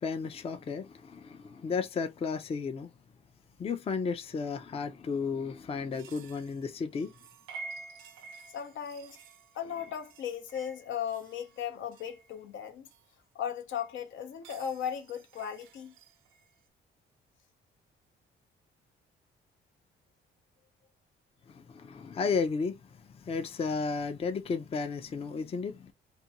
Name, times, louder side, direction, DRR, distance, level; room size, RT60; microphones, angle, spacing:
voice 1, 0.0-2.9 3.6-7.1 21.5-25.9, left 5 dB, 30° left, 0.4 m, -33 dB
sound 1, 5.9-13.1 13.7-16.6, right 4 dB, 90° right, 0.5 m, -51 dB
voice 2, 8.5-9.2 9.5-12.9 13.3-15.9, left 8 dB, 75° left, 0.7 m, -37 dB
2.5 x 2.2 x 2.8 m
cardioid pair, 90°, 20 cm